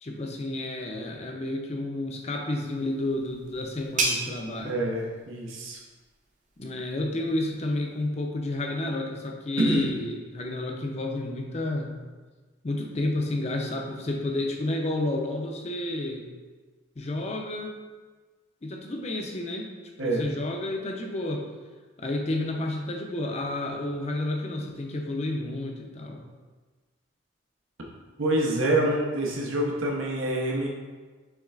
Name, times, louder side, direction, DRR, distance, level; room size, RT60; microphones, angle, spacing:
voice 1, 0.0-4.8 6.6-12.0 12.6-16.3 17.0-17.7 18.6-19.7 20.0-21.5 22.0-26.2, left 1 dB, 35° left, 2 dB, 0.5 m, -31 dB
sound 1, 2.6-8.0, right 3 dB, 35° right, 0.6 m, -35 dB
voice 2, 4.6-5.8 9.6-9.9 20.0-20.2 28.2-30.7, right 1 dB, 90° right, -1 dB, 0.8 m, -26 dB
6.8 x 3.2 x 2.4 m, 1.3 s
head